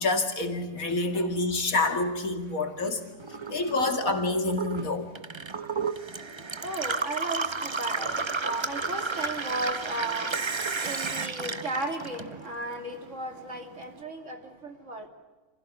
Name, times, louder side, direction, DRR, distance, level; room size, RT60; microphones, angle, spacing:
voice 1, 0.0-3.0 3.5-5.1, left 2 dB, 60° left, 2.7 m, -27 dB
Gurgling / Water tap faucet / Sink (filling or washing), 3.2-12.7 13.0-13.9, right 4 dB, 25° right, 0.6 m, -32 dB
voice 2, 3.3-3.7 5.4-15.1, right 2 dB, 50° right, 3.1 m, -36 dB
26.0 x 16.0 x 9.9 m
omnidirectional pair, 1.6 m